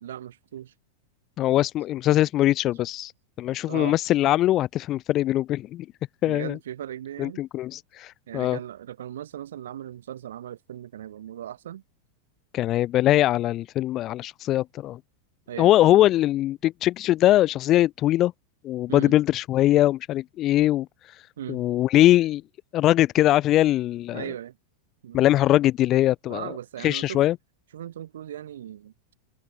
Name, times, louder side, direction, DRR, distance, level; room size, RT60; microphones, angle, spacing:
voice 1, 0.0-0.7 3.7-4.0 6.3-7.4 8.3-11.8 15.5-16.0 18.9-19.2 21.4-21.6 24.1-24.6 25.0-25.3 26.3-27.2 27.7-28.9, right 11 dB, 60° right, 0.5 m, -38 dB
voice 2, 1.4-3.1 3.4-5.9 6.2-6.6 7.2-8.6 12.5-15.0 15.6-18.3 18.6-21.2 21.5-22.4 22.7-24.2 25.1-26.5 26.8-27.4, left 14 dB, 35° left, 0.3 m, -21 dB
open air
figure-of-eight pair, 90°, 0 cm